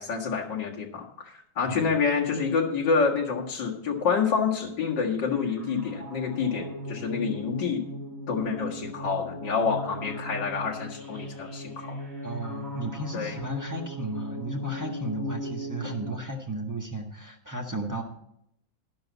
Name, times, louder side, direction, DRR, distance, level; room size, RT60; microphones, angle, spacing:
voice 1, 0.0-7.8 8.3-12.0 13.1-13.4, left 5 dB, 60° left, -1 dB, 2.4 m, -28 dB
sound 1, 5.3-16.1, equal, 60° right, 4.2 m, -38 dB
voice 2, 12.2-18.0, right 1 dB, 10° right, 0 dB, 1.3 m, -34 dB
11.5 x 11.5 x 4.1 m, 0.72 s
omnidirectional pair, 2.2 m